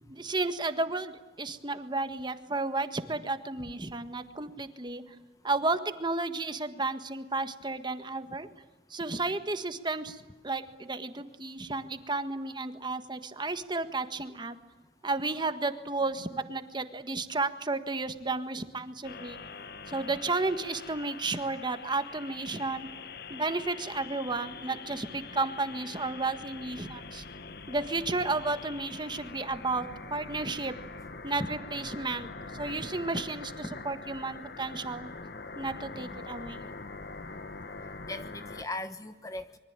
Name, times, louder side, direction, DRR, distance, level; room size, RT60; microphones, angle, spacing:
voice 1, 0.0-5.0 5.4-8.5 8.9-14.6 15.0-19.4 19.9-22.9 23.3-27.2 27.7-30.7 31.2-35.1 35.6-36.6, right 3 dB, 25° right, 9 dB, 1.6 m, -33 dB
sound 1, 19.0-38.6, left 4 dB, 60° left, 1.5 m, -44 dB
voice 2, 38.1-39.6, left 1 dB, 20° left, 10 dB, 1.0 m, -39 dB
26.0 x 23.5 x 9.0 m, 1.1 s
head